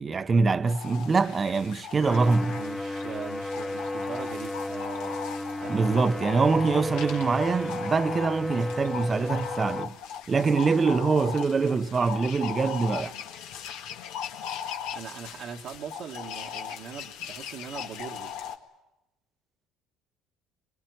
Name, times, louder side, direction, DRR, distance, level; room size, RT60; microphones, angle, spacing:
voice 1, 0.0-2.6 5.7-10.0 10.3-13.1, right 4 dB, 30° right, 0.8 m, -24 dB
sound 1, 0.7-18.6, left 8 dB, 80° left, 1.8 m, -38 dB
sound 2, 2.0-9.9, left 1 dB, 10° left, 1.1 m, -34 dB
voice 2, 2.4-5.2 5.6-6.6 14.9-18.3, right 7 dB, 60° right, 1.5 m, -41 dB
23.0 x 21.5 x 9.4 m
supercardioid pair, 80°, 0 cm